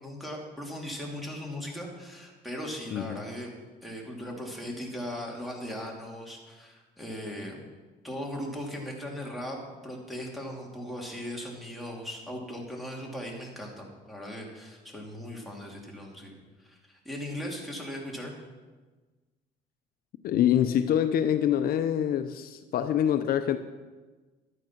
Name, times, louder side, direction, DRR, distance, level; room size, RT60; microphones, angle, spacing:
voice 1, 0.0-3.5 3.8-7.6 8.0-18.3, equal, ahead, -1 dB, 2.9 m, -38 dB
voice 2, 2.9-3.2 20.2-23.6, left 10 dB, 65° left, 10 dB, 0.6 m, -25 dB
12.0 x 9.3 x 5.9 m, 1.3 s
cardioid pair, 110°, 17 cm